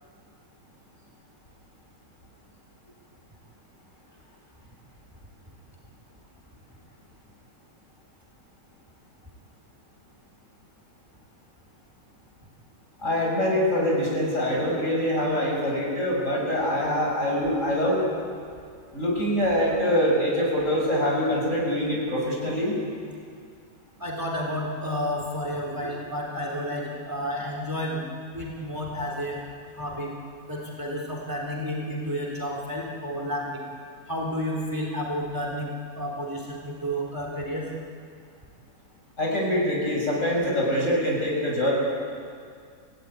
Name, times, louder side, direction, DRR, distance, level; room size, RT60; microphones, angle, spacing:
voice 1, 13.0-18.0 18.9-22.8 39.2-41.7, equal, 50° left, -2 dB, 6.5 m, -24 dB
voice 2, 24.0-28.1 28.3-29.4 29.8-30.1 30.5-33.6 34.1-37.7, equal, 10° right, -1 dB, 3.5 m, -31 dB
27.5 x 16.5 x 9.6 m, 2.2 s
omnidirectional pair, 1.6 m